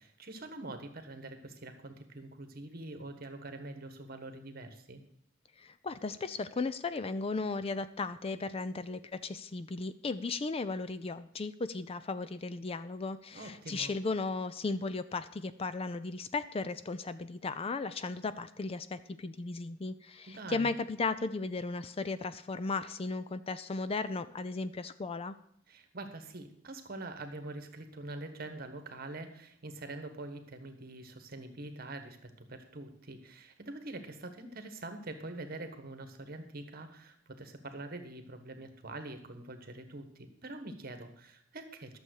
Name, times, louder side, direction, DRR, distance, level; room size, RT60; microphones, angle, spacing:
voice 1, 0.0-5.0 13.3-13.9 20.3-20.7 25.7-42.0, right 2 dB, 50° right, 8 dB, 1.4 m, -45 dB
voice 2, 5.6-25.4, left 3 dB, 30° left, 13 dB, 0.4 m, -36 dB
12.0 x 7.1 x 6.4 m, 0.72 s
head